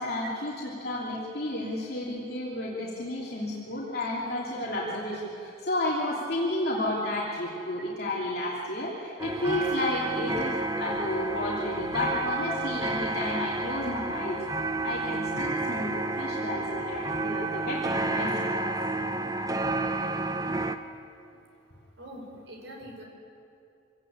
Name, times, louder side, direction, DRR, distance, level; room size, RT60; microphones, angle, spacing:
voice 1, 0.0-14.4 14.8-17.8 18.1-18.8, left 1 dB, 55° left, -5 dB, 3.0 m, -32 dB
sound 1, 9.2-20.8, right 2 dB, 20° right, 0.8 m, -30 dB
voice 2, 22.0-23.0, equal, 75° right, 1 dB, 5.2 m, -43 dB
25.0 x 17.5 x 8.7 m, 2.7 s
head